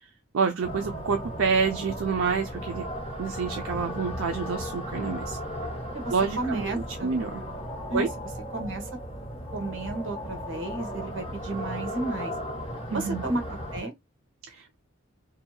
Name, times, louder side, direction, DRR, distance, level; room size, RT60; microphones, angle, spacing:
voice 1, 0.3-2.8 3.2-5.4 6.1-7.4 7.9-8.1 12.9-13.2 14.5-14.8, right 5 dB, 85° right, 0.5 m, -28 dB
sound 1, 0.6-13.8, equal, 30° left, 1.1 m, -36 dB
voice 2, 5.9-7.1 7.9-8.1 8.5-8.9 9.5-12.3 12.9-13.4 13.7-13.9, right 2 dB, 65° right, 1.0 m, -32 dB
2.7 x 2.3 x 2.6 m
head